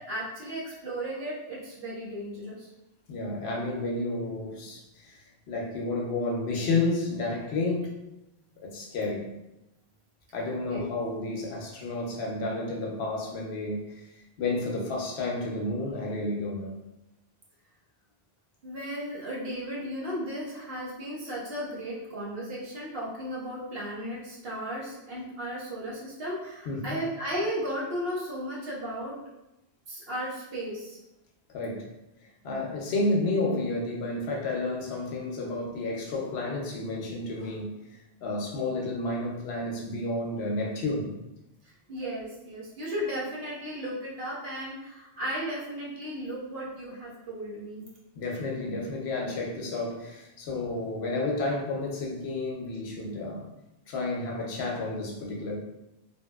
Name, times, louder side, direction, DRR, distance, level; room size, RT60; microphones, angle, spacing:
voice 1, 0.0-2.7 10.7-10.8 18.6-29.2 29.9-31.0 41.9-47.8 50.4-50.7, equal, 60° right, -5 dB, 1.0 m, -35 dB
voice 2, 3.1-8.0 8.6-9.3 10.3-14.0 14.4-16.8 26.7-27.0 31.5-31.9 32.4-37.7 38.2-41.1 48.2-53.5 53.9-55.5, left 2 dB, 75° left, -1 dB, 0.8 m, -31 dB
2.8 x 2.7 x 2.3 m, 0.92 s
omnidirectional pair, 1.1 m